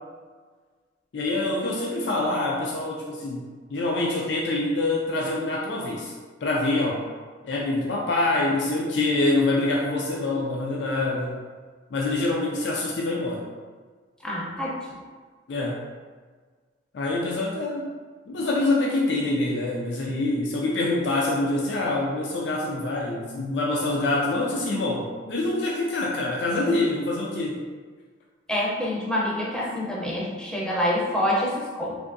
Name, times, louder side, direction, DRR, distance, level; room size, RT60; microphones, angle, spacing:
voice 1, 1.1-3.4 3.7-6.1 6.4-7.0 7.4-11.4 11.9-13.5 15.5-15.8 16.9-17.9 18.3-27.6, left 2 dB, 70° left, -2 dB, 0.4 m, -25 dB
voice 2, 14.2-14.8 28.5-32.0, left 1 dB, 5° left, -5 dB, 0.5 m, -26 dB
3.4 x 2.6 x 2.5 m, 1.5 s
head